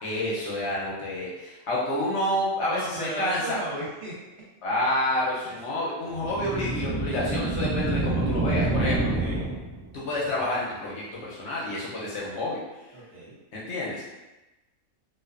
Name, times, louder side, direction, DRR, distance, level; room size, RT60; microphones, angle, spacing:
voice 1, 0.0-3.6 4.6-9.1 9.9-12.6 13.5-14.0, left 1 dB, 65° left, -6 dB, 0.8 m, -29 dB
voice 2, 2.6-4.2 5.4-5.8 8.9-9.5 12.9-13.4, right 1 dB, 55° right, -7 dB, 0.8 m, -36 dB
sound 1, 6.1-10.0, right 2 dB, 30° right, 0.8 m, -27 dB
2.3 x 2.3 x 2.3 m, 1.0 s
omnidirectional pair, 1.4 m